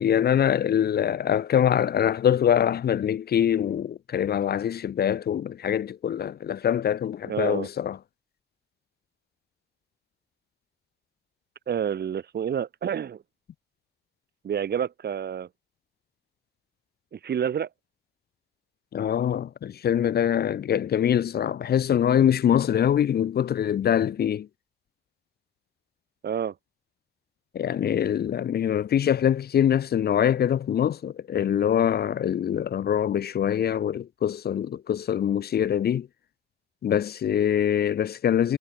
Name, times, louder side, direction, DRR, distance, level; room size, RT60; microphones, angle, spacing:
voice 1, 0.0-8.0 18.9-24.5 27.5-36.1 36.8-38.6, left 9 dB, 50° left, 0.9 m, -24 dB
voice 2, 7.3-7.7 11.7-13.2 14.4-15.5 17.1-17.7 26.2-26.5, right 8 dB, 55° right, 4.0 m, -28 dB
cardioid pair, 90°, 20 cm